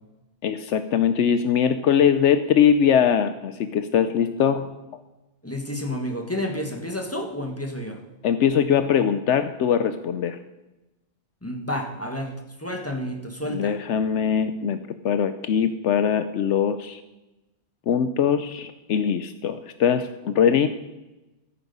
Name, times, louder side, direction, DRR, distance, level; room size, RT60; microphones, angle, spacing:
voice 1, 0.4-4.7 8.2-10.4 13.5-14.8 15.0-17.0 17.9-20.7, left 8 dB, 80° left, 11 dB, 0.9 m, -21 dB
voice 2, 5.4-8.0 11.4-13.8, left 1 dB, 10° left, 3 dB, 1.5 m, -30 dB
14.5 x 8.7 x 5.4 m, 1.0 s
omnidirectional pair, 1.2 m